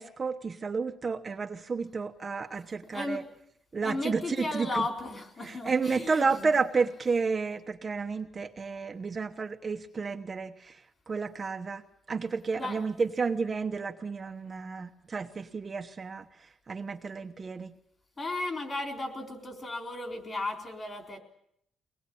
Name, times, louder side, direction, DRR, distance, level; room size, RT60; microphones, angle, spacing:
voice 1, 0.0-3.2 3.7-4.9 5.4-11.8 12.1-17.7, right 4 dB, 30° right, 5 dB, 1.1 m, -31 dB
voice 2, 2.9-3.2 3.8-6.5 12.6-12.8 18.2-21.2, left 2 dB, 25° left, 3 dB, 4.1 m, -35 dB
24.0 x 19.5 x 8.6 m, 0.74 s
cardioid pair, 155°, 0 cm